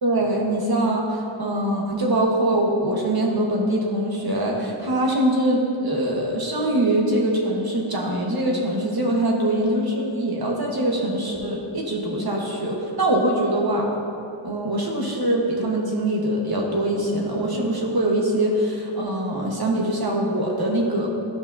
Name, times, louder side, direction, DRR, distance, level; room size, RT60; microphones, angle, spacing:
voice 1, 0.0-13.9 14.4-21.1, right 1 dB, 50° right, -2 dB, 1.4 m, -23 dB
13.5 x 5.1 x 2.7 m, 2.7 s
wide cardioid pair, 95°, 48 cm